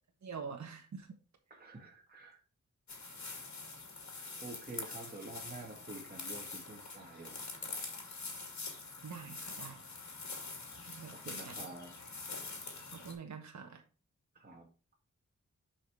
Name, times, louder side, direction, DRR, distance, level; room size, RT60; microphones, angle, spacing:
voice 1, 0.2-1.1 9.0-9.8 10.9-11.7 12.9-13.8, right 6 dB, 65° right, 3 dB, 1.2 m, -46 dB
voice 2, 1.5-2.4 4.1-7.6 10.8-12.0 14.4-14.7, right 2 dB, 30° right, -1 dB, 1.9 m, -49 dB
sound 1, 2.9-13.1, left 3 dB, 70° left, 2.7 m, -45 dB
6.4 x 5.3 x 4.8 m, 0.35 s
cardioid pair, 55°, 30 cm